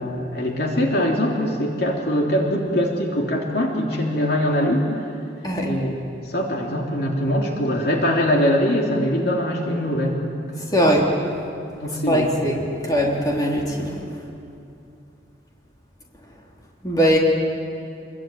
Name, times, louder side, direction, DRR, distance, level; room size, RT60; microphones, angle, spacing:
voice 1, 0.0-4.9 5.6-5.9 6.3-10.7 11.8-12.3, equal, 60° left, -1 dB, 3.2 m, -22 dB
voice 2, 10.7-11.1 12.1-14.0 16.8-17.2, equal, 20° left, -3 dB, 3.8 m, -20 dB
27.0 x 22.5 x 9.2 m, 2.6 s
head